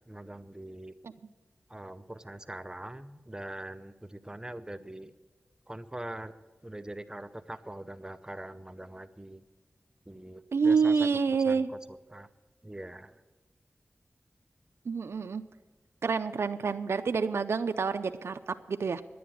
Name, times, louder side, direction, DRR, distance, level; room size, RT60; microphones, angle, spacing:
voice 1, 0.1-0.9 1.7-5.1 5.7-6.3 6.6-9.4 10.1-11.1 11.5-11.6 12.1-12.3 12.6-13.2, right 1 dB, 15° right, 10 dB, 0.7 m, -42 dB
voice 2, 10.5-11.7 14.9-15.4 16.0-19.0, right 5 dB, 80° right, 8 dB, 0.5 m, -28 dB
11.0 x 9.4 x 8.7 m, 1.3 s
wide cardioid pair, 65°, 4 cm